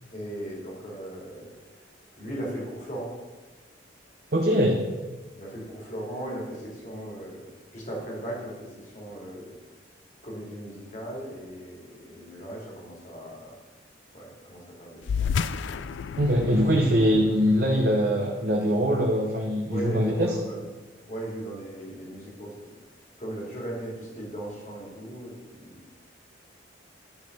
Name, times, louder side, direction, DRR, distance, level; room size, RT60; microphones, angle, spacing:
voice 1, 0.1-1.5 2.2-3.2 5.3-9.6 10.2-13.6 14.1-15.0 19.7-20.6 21.1-22.8 23.2-25.8, right 1 dB, 40° left, -3 dB, 2.4 m, -37 dB
voice 2, 4.3-4.8 16.2-20.4, equal, 55° right, 0 dB, 0.8 m, -22 dB
sound 1, 15.0-19.9, left 6 dB, 75° left, 0.3 m, -33 dB
10.5 x 4.0 x 5.2 m, 1.2 s
head